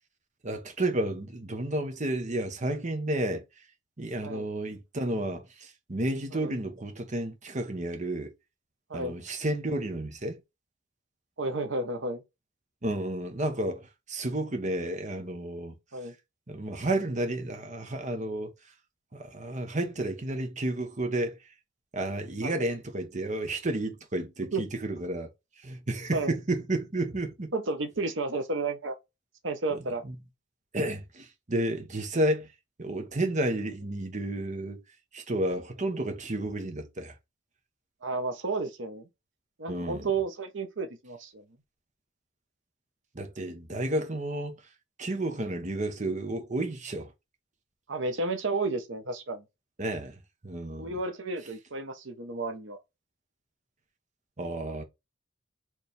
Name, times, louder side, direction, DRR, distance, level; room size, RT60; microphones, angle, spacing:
voice 1, 0.4-3.4 4.0-8.3 8.9-10.4 12.8-15.7 16.5-18.5 19.1-21.4 21.9-25.3 25.6-27.5 30.0-30.1 30.7-32.5 32.8-34.8 35.1-37.1 39.7-40.1 43.1-44.6 45.0-47.1 49.8-50.9 54.4-54.8, right 1 dB, 40° right, 1.1 m, -31 dB
voice 2, 11.4-12.2 15.9-16.1 22.4-22.6 24.5-24.6 26.1-26.3 27.5-29.0 29.4-30.0 38.0-39.1 39.6-41.4 47.9-49.4 50.8-52.8, right 3 dB, 75° right, 0.9 m, -32 dB
4.5 x 3.3 x 3.3 m
head